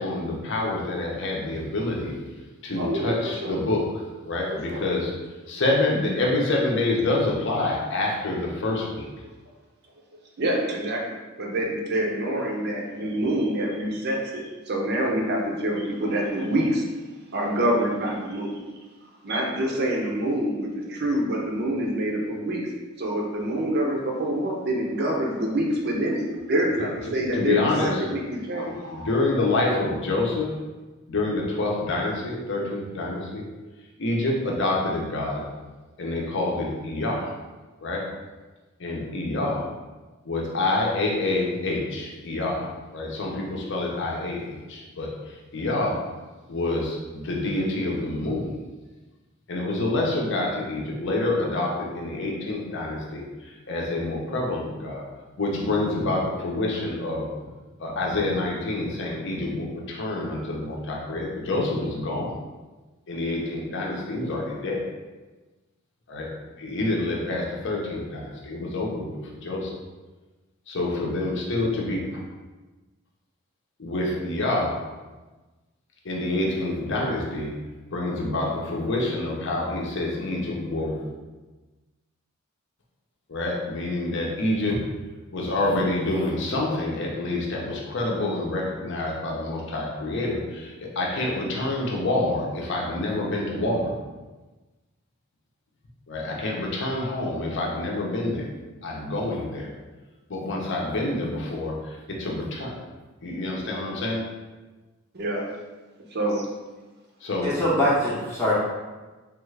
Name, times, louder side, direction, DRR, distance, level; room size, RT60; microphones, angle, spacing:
voice 1, 0.0-2.1 2.6-3.8 4.3-5.1 5.5-9.1 27.3-27.9 28.6-30.5 31.1-33.4 34.0-35.4 36.0-37.3 37.8-38.0 38.8-39.6 40.3-42.7 42.9-45.1 45.5-45.9 46.5-48.5 49.5-55.0 55.4-57.3 57.8-62.3 63.1-64.8 66.1-66.3 66.6-69.7 70.7-72.2 73.8-74.7 76.0-77.5 77.9-81.1 83.3-84.8 85.3-93.9 96.1-98.5 98.8-99.7 100.3-102.8 103.2-104.2 107.2-107.5, left 2 dB, 60° left, -2 dB, 0.7 m, -27 dB
voice 2, 2.8-3.1 3.4-3.6 4.5-4.9 10.4-16.8 17.3-18.6 19.2-22.7 23.0-26.2 26.5-29.1 105.1-105.4 106.1-106.5, right 1 dB, 50° right, 0 dB, 0.6 m, -26 dB
voice 3, 107.4-108.5, equal, 15° left, -8 dB, 0.6 m, -23 dB
3.4 x 2.4 x 3.2 m, 1.2 s
head